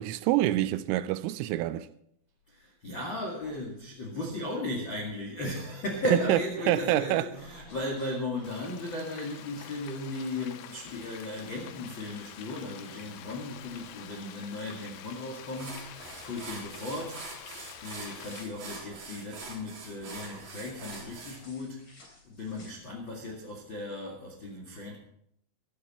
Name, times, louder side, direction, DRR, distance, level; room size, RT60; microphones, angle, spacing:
voice 1, 0.0-1.9 6.1-7.3, right 14 dB, 85° right, 3.2 m, -26 dB
voice 2, 2.5-17.4 17.8-21.9 22.2-25.0, left 1 dB, 45° left, 1.6 m, -36 dB
sound 1, 5.6-5.7 6.2-6.6 7.3-13.3 13.6-14.3 14.6-16.6 17.0-17.3 17.6-17.8 18.5-19.1 20.7-23.2, left 2 dB, 30° left, 3.3 m, -58 dB
Frying (food), 8.4-18.4, left 11 dB, 80° left, 2.6 m, -47 dB
sound 2, 15.0-15.2 15.5-21.4, right 3 dB, 45° right, 5.5 m, -44 dB
15.0 x 14.5 x 4.3 m
omnidirectional pair, 5.7 m